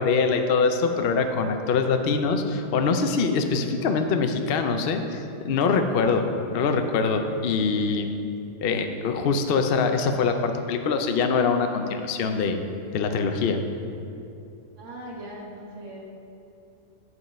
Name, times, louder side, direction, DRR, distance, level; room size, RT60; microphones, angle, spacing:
voice 1, 0.0-6.3 6.5-8.1 8.6-12.6 12.9-13.6, left 4 dB, 75° left, 6 dB, 0.5 m, -24 dB
voice 2, 14.8-16.1, right 1 dB, 45° right, -3 dB, 1.7 m, -40 dB
9.7 x 4.7 x 6.1 m, 2.7 s
omnidirectional pair, 1.8 m